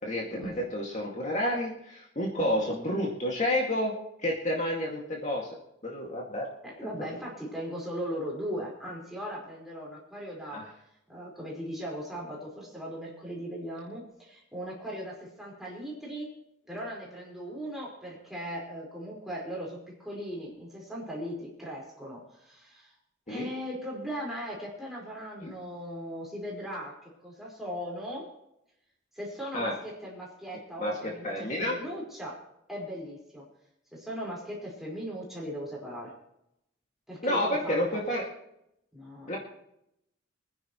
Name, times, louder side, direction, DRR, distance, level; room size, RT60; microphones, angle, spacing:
voice 1, 0.0-5.5 5.8-6.5 6.8-6.9 10.5-10.7 23.3-23.5 25.4-25.5 29.5-29.7 30.8-31.8 37.2-38.3 39.3-39.4, left 1 dB, 35° left, -2 dB, 2.2 m, -30 dB
voice 2, 6.6-10.6 11.1-16.3 16.7-22.9 23.3-28.3 29.1-32.4 32.7-33.4 33.9-36.1 37.1-38.0 38.9-39.4, equal, ahead, -3 dB, 4.8 m, -38 dB
25.0 x 10.5 x 3.1 m, 0.81 s
head